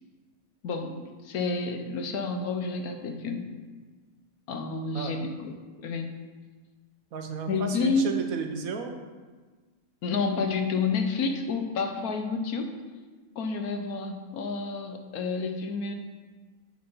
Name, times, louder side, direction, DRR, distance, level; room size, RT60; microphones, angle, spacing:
voice 1, 0.6-3.5 4.5-6.1 7.5-8.2 10.0-12.7 13.4-15.9, left 4 dB, 80° left, 5 dB, 1.4 m, -30 dB
voice 2, 7.1-9.0, right 5 dB, 70° right, 5 dB, 1.3 m, -33 dB
8.6 x 5.2 x 5.5 m, 1.4 s
omnidirectional pair, 1.5 m